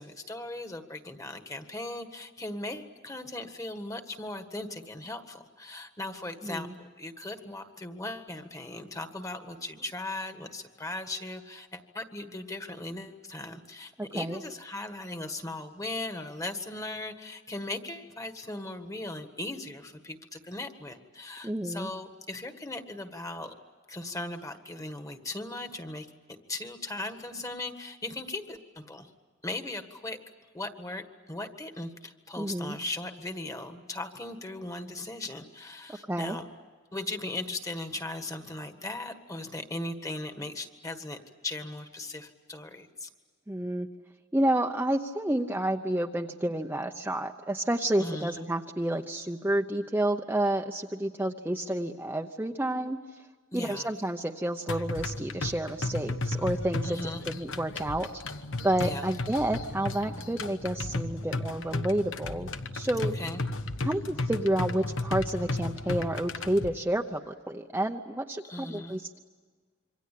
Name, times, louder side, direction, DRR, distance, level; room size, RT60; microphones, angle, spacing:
voice 1, 0.0-23.5 23.9-26.1 26.5-29.1 29.4-30.2 30.5-31.0 31.3-36.5 36.9-41.2 41.4-43.1 48.0-48.4 53.5-53.9 56.8-57.2 58.8-59.1 63.1-63.4 68.4-69.0, left 2 dB, 15° left, 7 dB, 1.7 m, -38 dB
voice 2, 6.4-6.7 14.0-14.4 21.4-21.9 32.4-32.8 36.1-36.4 43.5-43.9 44.3-53.0 53.5-58.1 58.6-63.2 63.8-69.2, right 1 dB, 10° right, 3 dB, 0.8 m, -30 dB
sound 1, 54.7-66.7, left 2 dB, 70° left, 1.2 m, -34 dB
27.0 x 24.5 x 8.5 m, 1.5 s
head